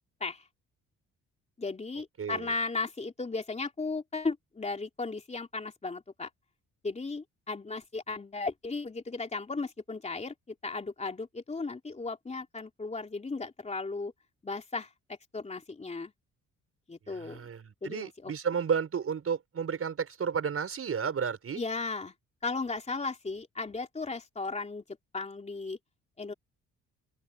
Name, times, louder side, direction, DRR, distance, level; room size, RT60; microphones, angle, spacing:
voice 1, 1.6-6.3 6.8-10.3 10.6-14.1 14.4-14.9 15.3-16.1 16.9-17.5 17.8-18.3 21.6-22.1 22.4-24.8 25.1-25.8 26.2-26.3, left 3 dB, 20° left, 3.1 m, -35 dB
voice 2, 2.2-2.5 17.1-21.6, right 7 dB, 50° right, 6.4 m, -32 dB
cardioid pair, 90°, 30 cm